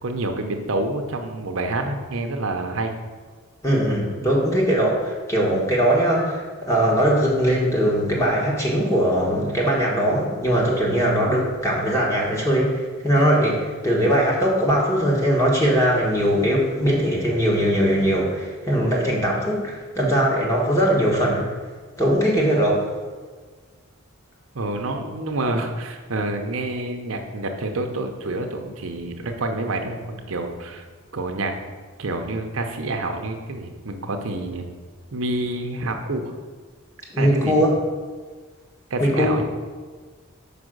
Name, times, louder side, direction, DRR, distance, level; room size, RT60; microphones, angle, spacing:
voice 1, 0.0-3.0 22.7-22.8 24.5-30.8 31.1-31.6 32.0-34.7 35.1-36.3 37.2-37.5 38.9-39.4, right 2 dB, 70° right, 4 dB, 0.7 m, -28 dB
voice 2, 3.6-21.5 22.0-22.8 37.1-37.7 39.0-39.3, equal, 15° left, -3 dB, 1.4 m, -20 dB
5.3 x 5.0 x 6.4 m, 1.5 s
head